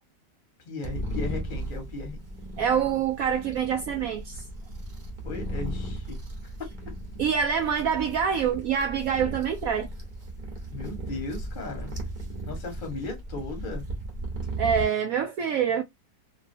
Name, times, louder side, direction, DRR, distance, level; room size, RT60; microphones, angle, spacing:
voice 1, 0.6-2.2 5.2-6.2 10.7-11.9 12.5-13.8, left 3 dB, 30° left, 1.2 m, -36 dB
sound 1, 0.8-14.9, right 1 dB, 35° right, 0.8 m, -36 dB
voice 2, 2.6-4.4 7.2-9.9 14.6-15.8, right 7 dB, 75° right, 0.8 m, -26 dB
3.1 x 2.7 x 2.7 m
omnidirectional pair, 1.9 m